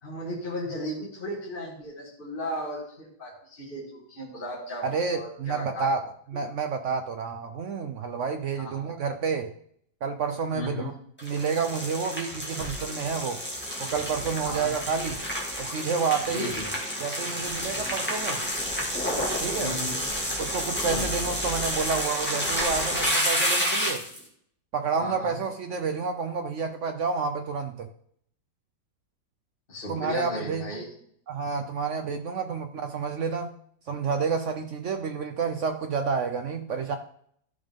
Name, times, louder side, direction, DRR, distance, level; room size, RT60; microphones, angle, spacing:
voice 1, 0.0-5.8 8.6-8.9 10.5-10.9 14.4-14.7 16.3-16.7 19.6-20.0 20.9-21.2 25.0-25.3 29.7-30.9, left 1 dB, 30° left, -6 dB, 2.1 m, -35 dB
voice 2, 4.8-9.5 10.0-10.9 11.2-13.4 13.8-15.2 15.6-16.6 17.0-18.4 19.4-19.7 20.4-24.0 24.7-27.9 29.9-30.7 31.3-33.5 33.9-37.0, right 5 dB, 75° right, 7 dB, 0.6 m, -29 dB
sound 1, 11.2-24.2, equal, 5° left, 1.8 m, -30 dB
13.0 x 5.2 x 3.6 m, 0.66 s
omnidirectional pair, 2.0 m